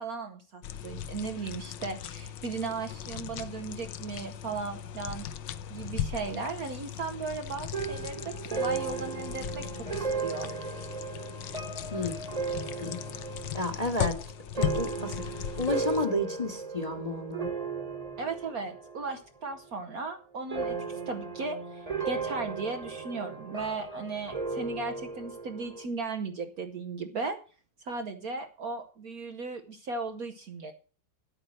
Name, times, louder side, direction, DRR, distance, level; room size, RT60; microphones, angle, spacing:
voice 1, 0.0-5.2 5.7-10.5 18.2-27.4 27.8-30.7, right 4 dB, 55° right, 6 dB, 1.3 m, -36 dB
sound 1, 0.6-16.1, left 9 dB, 70° left, 1.4 m, -38 dB
sound 2, 7.7-19.2 19.5-20.1 20.5-25.9, right 4 dB, 20° right, 1.6 m, -36 dB
voice 2, 13.5-14.2 14.5-15.3 15.6-17.5, left 1 dB, 20° left, 6 dB, 1.5 m, -31 dB
10.0 x 8.7 x 6.3 m, 0.38 s
omnidirectional pair, 2.2 m